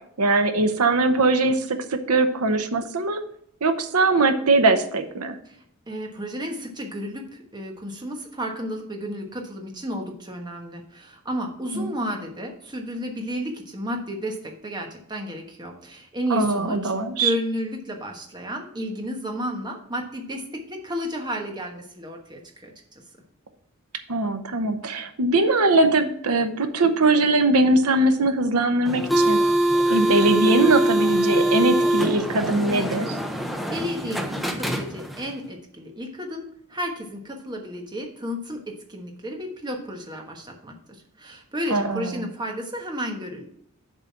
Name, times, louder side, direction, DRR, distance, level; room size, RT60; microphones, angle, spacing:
voice 1, 0.2-3.2 3.6-5.4 11.7-12.0 16.3-17.3 24.1-29.4 29.9-33.2 41.7-42.3, right 2 dB, 85° right, 8 dB, 0.9 m, -21 dB
voice 2, 5.9-14.4 14.6-16.9 17.2-20.4 20.7-22.7 33.7-36.4 36.7-38.6 38.9-40.7 41.2-43.5, equal, 20° right, 2 dB, 1.2 m, -32 dB
sound 1, 28.8-35.3, right 1 dB, ahead, 0.6 m, -23 dB
7.3 x 4.0 x 5.8 m, 0.69 s
head